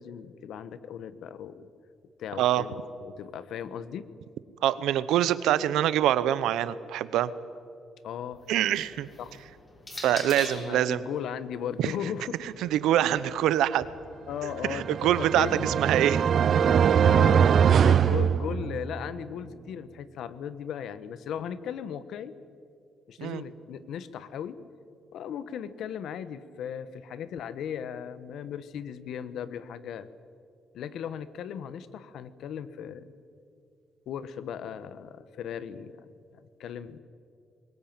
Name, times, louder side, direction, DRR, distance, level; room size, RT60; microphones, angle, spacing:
voice 1, 0.0-1.7 2.2-4.1 8.0-8.4 9.2-9.4 10.1-10.2 10.5-12.4 13.0-13.1 14.3-15.6 17.0-22.3 23.1-24.6 25.1-30.1 30.7-33.1 34.1-37.0, left 8 dB, 75° left, 14 dB, 1.2 m, -37 dB
voice 2, 4.6-7.3 8.5-9.1 10.0-11.0 11.8-11.9 12.6-13.9 14.7-16.2 23.2-23.4, right 12 dB, 85° right, 16 dB, 0.9 m, -25 dB
sound 1, 8.3-10.8 11.7-13.8, left 2 dB, 25° left, 5.5 m, -44 dB
sound 2, 14.6-19.0, right 8 dB, 55° right, 0.5 m, -22 dB
21.5 x 19.0 x 9.0 m, 2.4 s
cardioid pair, 90°, 0 cm